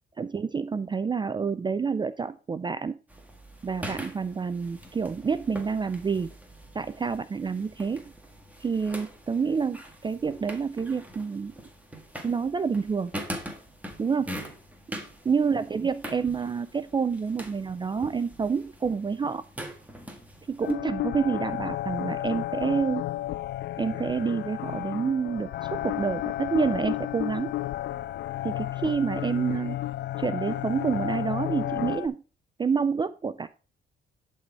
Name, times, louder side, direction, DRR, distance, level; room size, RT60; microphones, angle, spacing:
voice 1, 0.2-3.0 3.6-6.3 6.7-8.0 8.6-11.5 12.2-13.1 14.0-14.4 15.3-19.4 20.5-23.0 23.8-27.5 28.4-29.8 30.2-32.2 32.6-33.5, right 5 dB, 25° right, 14 dB, 0.4 m, -28 dB
sound 1, 3.1-20.7, equal, 5° right, 1.7 m, -43 dB
sound 2, 20.6-32.1, left 14 dB, 60° left, 0.4 m, -32 dB
11.0 x 4.2 x 4.6 m, 0.36 s
cardioid pair, 90°, 20 cm